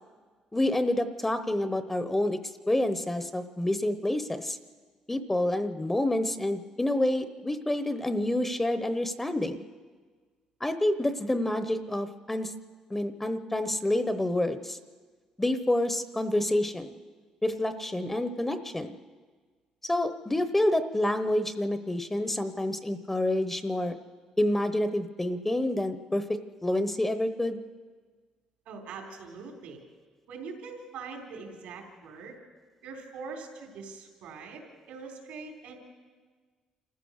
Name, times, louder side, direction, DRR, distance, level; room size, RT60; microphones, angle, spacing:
voice 1, 0.5-2.4 2.7-4.6 5.1-9.6 10.6-12.5 12.9-14.8 15.4-16.9 17.4-19.0 19.8-24.0 24.4-26.2 26.6-27.6, left 1 dB, 10° left, 10 dB, 1.0 m, -28 dB
voice 2, 28.7-29.8 30.3-32.4 32.8-35.8, right 4 dB, 85° right, 1 dB, 3.8 m, -43 dB
26.5 x 15.0 x 6.5 m, 1.5 s
cardioid pair, 105°, 2 cm